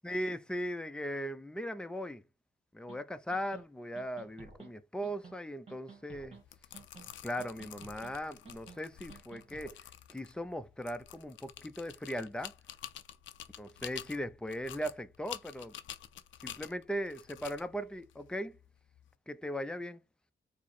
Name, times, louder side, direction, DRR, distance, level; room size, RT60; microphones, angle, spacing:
voice 1, 0.0-2.2 2.7-6.4 7.2-9.8 10.1-12.5 13.6-15.8 16.4-18.6 19.3-20.0, equal, 5° left, 0.5 m, -38 dB
sound 1, 2.9-3.0 3.3-3.6 4.0-4.7 5.0-5.4 5.7-6.4 6.7-7.1 7.4-8.1 8.5-8.8 9.1-9.7, right 5 dB, 30° right, 1.9 m, -53 dB
sound 2, 6.3-19.1, left 11 dB, 85° left, 0.4 m, -49 dB
4.4 x 2.1 x 4.3 m
cardioid pair, 65°, 19 cm